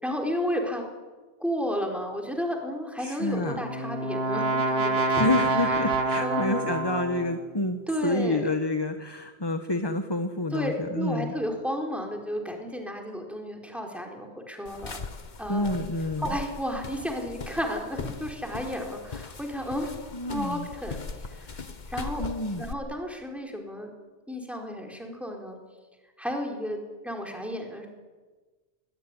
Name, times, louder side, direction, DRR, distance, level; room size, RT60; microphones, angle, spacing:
voice 1, 0.0-0.8 1.4-5.6 6.2-6.6 7.9-8.5 10.5-15.0 15.4-15.7 16.2-19.9 20.3-21.0 21.4-21.5 21.9-22.2 22.6-23.9 24.3-25.6 26.2-27.9, equal, ahead, 2 dB, 4.4 m, -32 dB
voice 2, 3.0-3.6 5.2-11.3 15.5-16.3 20.1-20.7 22.2-22.6, left 2 dB, 20° left, 7 dB, 1.3 m, -28 dB
Brass instrument, 3.3-7.4, right 2 dB, 60° right, 2.2 m, -27 dB
sound 1, 14.7-22.7, left 4 dB, 40° left, 1.3 m, -40 dB
21.0 x 20.5 x 9.9 m, 1.3 s
omnidirectional pair, 1.2 m